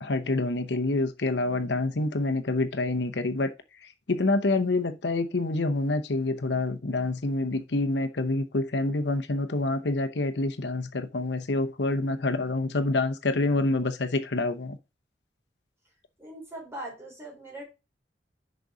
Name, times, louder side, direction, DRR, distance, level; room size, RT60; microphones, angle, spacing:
voice 1, 0.0-3.5 4.1-14.8, left 2 dB, 75° left, 0.8 m, -27 dB
voice 2, 16.2-17.6, right 1 dB, 15° right, 4.0 m, -40 dB
6.7 x 5.2 x 4.9 m
head